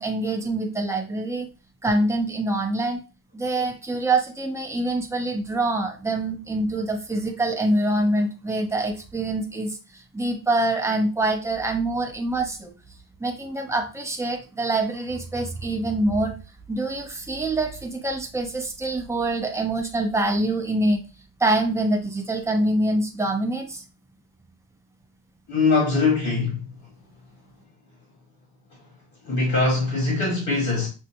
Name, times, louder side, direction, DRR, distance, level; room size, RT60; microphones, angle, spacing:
voice 1, 0.0-1.5 1.8-3.0 3.3-12.7 13.2-16.3 16.7-21.0 21.4-23.8, right 2 dB, 5° right, 0.7 m, -25 dB
voice 2, 25.5-26.9 28.7-28.9 29.2-30.9, left 3 dB, 65° left, 1.8 m, -23 dB
6.3 x 2.2 x 2.9 m
wide cardioid pair, 140°, 38 cm